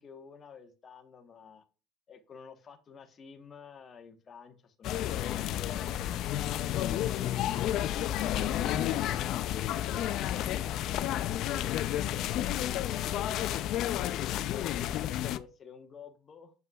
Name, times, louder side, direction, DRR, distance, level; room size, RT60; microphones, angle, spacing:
voice 1, 0.0-1.6 2.1-6.4 6.8-10.2 10.7-16.5, left 6 dB, 35° left, 1.1 m, -51 dB
sound 1, 4.8-15.4, left 12 dB, 60° left, 0.4 m, -31 dB
7.7 x 5.4 x 2.3 m
supercardioid pair, 100°, 0 cm